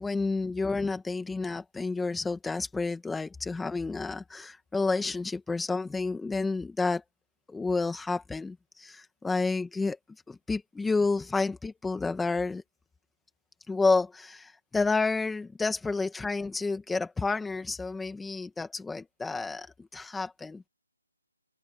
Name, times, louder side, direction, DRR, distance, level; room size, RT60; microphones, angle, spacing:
voice 1, 0.0-7.0 7.5-10.0 10.3-12.6 13.7-19.7 19.9-20.7, left 3 dB, 5° left, 2.0 m, -30 dB
open air
figure-of-eight pair, 160°, 0 cm